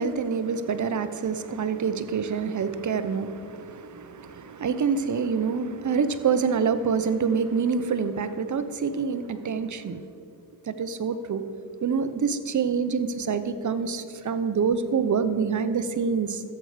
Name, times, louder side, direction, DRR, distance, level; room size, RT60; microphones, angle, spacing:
voice 1, 0.0-10.0 10.6-11.4 11.8-16.4, right 6 dB, 40° right, 11 dB, 0.8 m, -26 dB
13.5 x 8.0 x 5.0 m, 2.4 s
cardioid pair, 80°, 44 cm